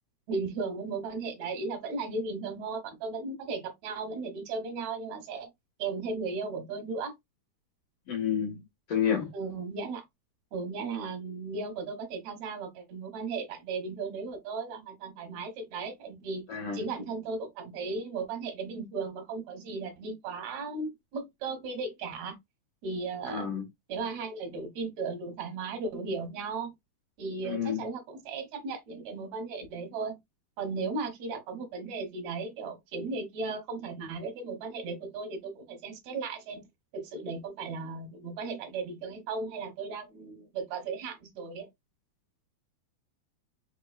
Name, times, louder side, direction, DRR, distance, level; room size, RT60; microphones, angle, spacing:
voice 1, 0.3-5.5 5.8-7.1 9.3-10.0 10.5-22.4 22.8-23.5 23.9-26.7 27.2-30.2 30.6-36.7 36.9-41.7, right 4 dB, 65° right, 2.0 m, -36 dB
voice 2, 8.1-8.6 8.9-9.3 16.5-16.8 23.3-23.6 27.4-27.8, left 8 dB, 55° left, 1.9 m, -29 dB
5.2 x 3.7 x 2.3 m
omnidirectional pair, 4.3 m